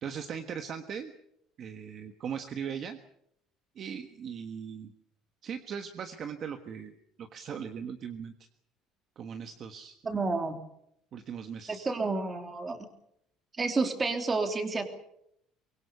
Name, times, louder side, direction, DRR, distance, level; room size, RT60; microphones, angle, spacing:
voice 1, 0.0-1.1 1.6-3.0 3.7-4.9 5.4-8.3 9.2-10.0 11.1-11.9, right 7 dB, 35° right, 7 dB, 1.4 m, -39 dB
voice 2, 10.0-10.6 11.7-12.8 13.6-14.9, right 3 dB, 15° right, 6 dB, 3.0 m, -30 dB
24.0 x 23.0 x 6.9 m, 0.74 s
cardioid pair, 170°, 0 cm